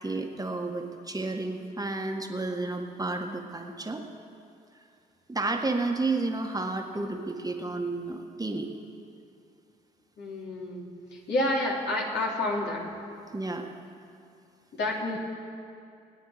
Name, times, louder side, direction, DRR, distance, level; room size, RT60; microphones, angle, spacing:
voice 1, 0.0-4.0 5.3-8.7 13.3-13.7, right 2 dB, 20° right, 3 dB, 1.7 m, -31 dB
voice 2, 10.2-12.9 14.7-15.2, left 1 dB, 60° left, -2 dB, 3.3 m, -29 dB
27.0 x 9.2 x 5.1 m, 2.5 s
hypercardioid pair, 45°, 20 cm